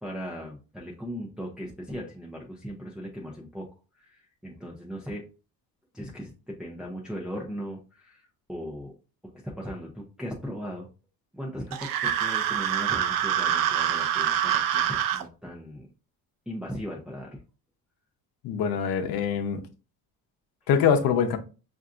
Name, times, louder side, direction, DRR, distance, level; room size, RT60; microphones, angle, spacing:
voice 1, 0.0-3.7 3.9-5.2 5.9-8.9 9.4-10.9 11.3-15.9 16.5-17.4, equal, ahead, 0.6 m, -38 dB
sound 1, 11.7-15.2, right 10 dB, 65° right, 0.5 m, -25 dB
voice 2, 18.4-19.6 20.7-21.4, left 7 dB, 75° left, 0.8 m, -24 dB
5.6 x 2.6 x 2.5 m
cardioid pair, 160°, 37 cm